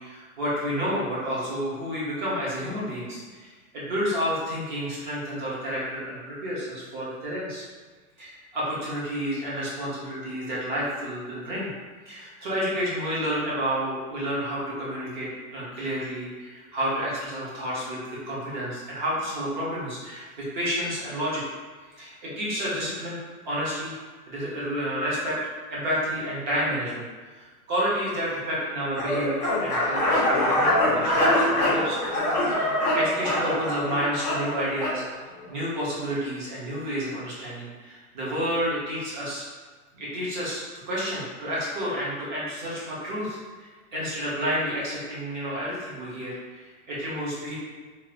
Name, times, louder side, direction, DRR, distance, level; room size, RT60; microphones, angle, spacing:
voice 1, 0.0-7.6 8.2-11.7 12.1-21.4 21.9-23.2 23.4-24.0 24.3-25.4 25.7-27.1 27.4-32.0 32.5-35.0 35.5-39.4 39.9-47.6, equal, 30° right, -7 dB, 0.8 m, -30 dB
sound 1, 28.9-35.0, left 1 dB, 30° left, 0.4 m, -24 dB
2.9 x 2.4 x 2.9 m, 1.4 s
supercardioid pair, 180°, 45 cm